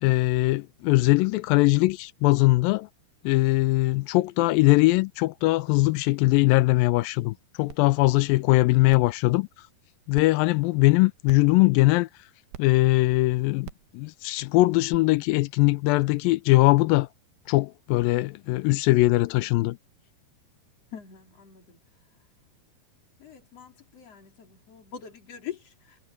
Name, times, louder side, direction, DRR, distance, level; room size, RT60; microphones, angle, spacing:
voice 1, 0.0-2.9 3.2-9.5 10.1-12.1 12.6-17.1 17.5-19.8, left 20 dB, 85° left, 2.0 m, -21 dB
sound 1, 7.7-7.8 8.3-8.4 8.9-9.1 10.2-10.3 11.3-11.5 12.5-12.6 13.6-13.9 14.9-15.0, right 13 dB, 80° right, 2.9 m, -41 dB
voice 2, 20.9-21.8 23.2-26.0, left 9 dB, 40° left, 4.2 m, -43 dB
omnidirectional pair, 4.6 m